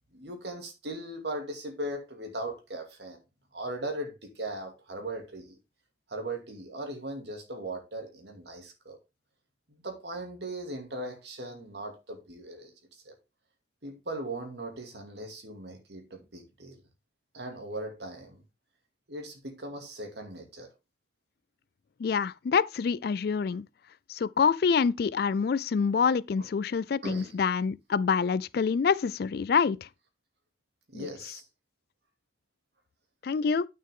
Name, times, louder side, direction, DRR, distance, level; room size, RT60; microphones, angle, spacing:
voice 1, 0.1-3.2 3.5-5.5 6.1-9.0 9.7-12.7 13.0-13.1 13.8-16.8 17.3-18.4 19.1-20.7 26.4-26.5 27.0-27.4 30.9-31.4, right 1 dB, 60° right, 2.3 m, -38 dB
voice 2, 22.0-23.6 24.1-29.8 30.9-31.1 33.2-33.6, left 6 dB, 55° left, 0.3 m, -26 dB
8.8 x 6.4 x 3.6 m
head